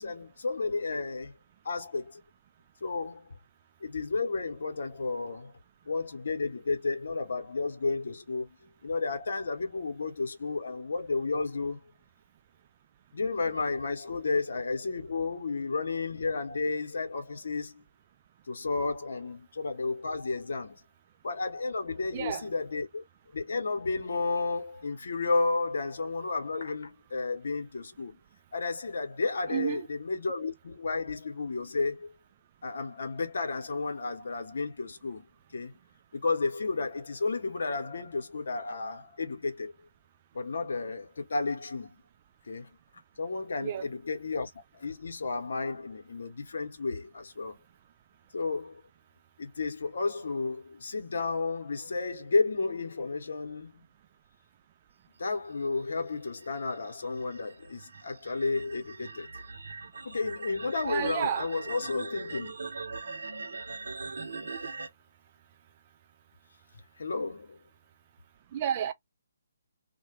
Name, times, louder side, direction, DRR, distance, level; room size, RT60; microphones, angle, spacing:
voice 1, 0.0-1.3 1.6-2.2 2.8-3.2 3.8-5.5 5.9-8.5 8.8-11.8 13.1-17.7 18.5-20.8 21.2-23.0 23.3-28.2 28.5-32.1 32.6-35.2 35.5-35.7 36.1-39.7 40.3-41.9 42.5-42.7 43.2-47.5 48.3-48.8 49.4-53.8 55.2-59.3 60.0-62.5 67.0-67.6, left 3 dB, 60° left, 0.9 m, -32 dB
voice 2, 22.1-22.5 29.5-29.9 43.6-43.9 60.8-61.6 68.5-68.9, right 9 dB, 35° right, 0.4 m, -31 dB
sound 1, 55.6-64.9, right 4 dB, 65° right, 0.7 m, -41 dB
2.2 x 2.2 x 3.2 m
figure-of-eight pair, 140°, 0 cm